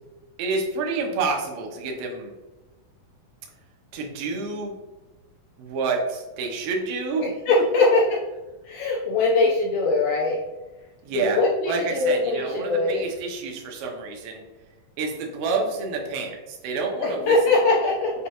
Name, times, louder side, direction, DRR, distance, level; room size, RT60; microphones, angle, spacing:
voice 1, 0.4-2.3 3.9-4.7 5.6-7.2 11.0-11.4 11.7-14.4 15.0-17.4, right 4 dB, 80° right, 1 dB, 2.5 m, -28 dB
voice 2, 7.2-8.0 8.7-10.4 11.1-13.0 17.0-18.1, left 3 dB, 80° left, -3 dB, 1.8 m, -21 dB
6.3 x 2.3 x 2.8 m, 1.1 s
omnidirectional pair, 4.2 m